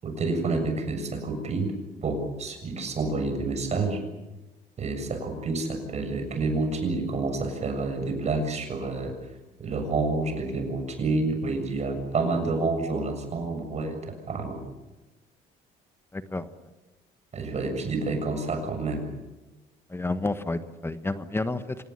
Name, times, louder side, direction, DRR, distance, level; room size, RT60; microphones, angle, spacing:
voice 1, 0.0-1.7 2.0-4.0 4.8-9.2 9.6-14.6 17.3-19.1, right 3 dB, 40° right, 6 dB, 7.2 m, -28 dB
voice 2, 16.1-16.5 19.9-21.8, left 2 dB, 15° left, 11 dB, 1.3 m, -30 dB
27.0 x 18.5 x 9.7 m, 1.1 s
cardioid pair, 110°, 17 cm